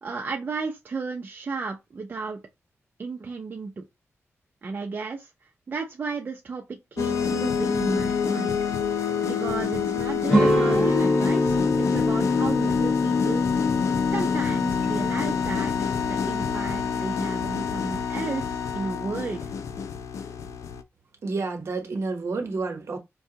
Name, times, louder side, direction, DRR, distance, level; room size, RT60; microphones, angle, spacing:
voice 1, 0.0-2.4 3.0-3.8 4.6-5.3 5.7-8.8 9.3-11.6 11.9-13.4 14.1-15.7 16.1-19.5, right 4 dB, 40° right, 0.5 m, -33 dB
sound 1, 7.0-20.8, left 6 dB, 80° left, 0.4 m, -26 dB
sound 2, 10.3-15.5, equal, 20° left, 1.6 m, -26 dB
voice 2, 21.2-23.0, right 3 dB, 65° right, 0.9 m, -29 dB
4.5 x 2.3 x 2.8 m
wide cardioid pair, 155°, 5 cm